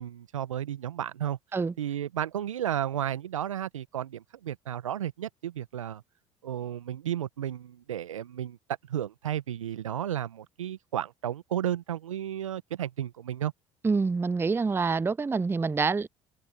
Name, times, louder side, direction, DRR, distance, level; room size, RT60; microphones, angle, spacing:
voice 1, 0.0-1.4 1.8-6.0 6.4-8.6 8.9-13.5, right 11 dB, 85° right, 1.1 m, -33 dB
voice 2, 13.8-16.1, right 4 dB, 15° right, 0.5 m, -26 dB
hypercardioid pair, 60°, 16 cm